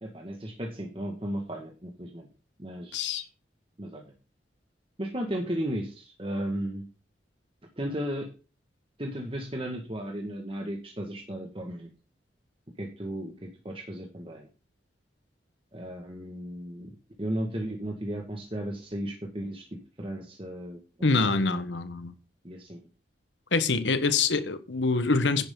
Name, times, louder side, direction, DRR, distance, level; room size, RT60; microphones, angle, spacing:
voice 1, 0.0-2.3 2.6-3.3 3.8-4.0 5.0-6.8 7.8-8.3 9.0-11.9 12.8-14.5 15.7-16.9 17.2-19.6 20.0-20.8 21.1-21.6 22.4-22.8, right 1 dB, 30° right, 1.8 m, -35 dB
voice 2, 2.9-3.2 21.0-22.1 23.5-25.5, left 4 dB, 90° left, 1.3 m, -25 dB
10.5 x 10.0 x 3.9 m
head